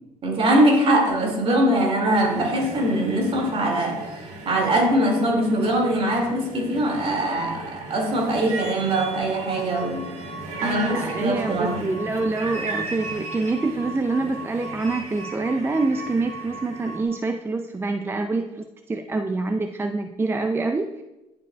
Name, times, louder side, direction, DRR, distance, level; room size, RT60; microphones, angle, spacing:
voice 1, 0.2-4.1 4.5-10.0 10.6-11.8, right 1 dB, 45° right, 0 dB, 2.2 m, -22 dB
sound 1, 2.1-17.0, right 3 dB, 65° right, 1.4 m, -37 dB
sound 2, 9.5-17.0, right 3 dB, 60° left, 1.2 m, -40 dB
voice 2, 10.6-20.9, right 3 dB, 20° right, 6 dB, 0.4 m, -26 dB
11.0 x 4.8 x 2.3 m, 1.0 s
supercardioid pair, 75°, 13 cm